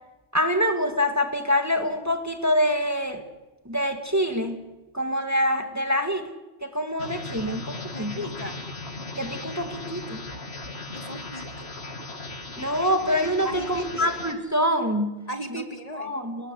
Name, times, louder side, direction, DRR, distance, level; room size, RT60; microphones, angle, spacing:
voice 1, 0.3-3.2 3.7-4.6 4.9-6.3 6.6-8.2 9.2-10.2 12.6-15.2 15.5-15.6 15.9-16.5, equal, 15° right, 5 dB, 2.0 m, -25 dB
sound 1, 7.0-14.3, left 2 dB, 75° left, 2.5 m, -37 dB
voice 2, 7.9-8.6 10.9-11.7 13.4-14.1 15.3-16.1, equal, 35° left, 5 dB, 2.6 m, -36 dB
29.0 x 19.5 x 8.3 m, 1.1 s
omnidirectional pair, 1.1 m